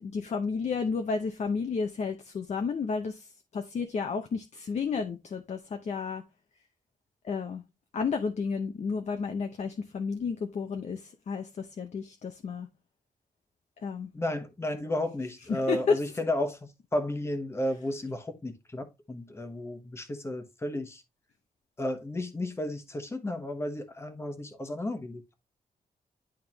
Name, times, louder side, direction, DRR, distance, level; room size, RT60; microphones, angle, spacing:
voice 1, 0.0-6.2 7.2-7.6 7.9-12.7 13.8-14.1 15.5-16.0, left 5 dB, 50° left, 0.7 m, -32 dB
voice 2, 14.1-21.0 21.8-25.3, left 1 dB, 15° left, 1.1 m, -33 dB
11.0 x 3.6 x 2.9 m
wide cardioid pair, 150°, 15 cm